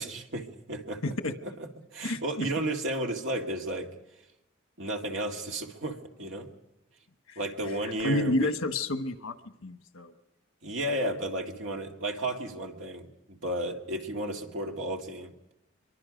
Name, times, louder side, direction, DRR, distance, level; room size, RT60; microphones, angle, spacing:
voice 1, 0.0-1.1 1.4-1.5 1.9-3.9 4.8-6.5 7.4-8.5 10.6-15.3, right 1 dB, 70° right, 2 dB, 2.2 m, -33 dB
voice 2, 1.0-1.3 2.0-2.5 7.3-7.4 8.0-9.4 9.6-10.1, left 2 dB, 90° left, 9 dB, 1.3 m, -30 dB
24.5 x 23.5 x 5.2 m, 0.91 s
head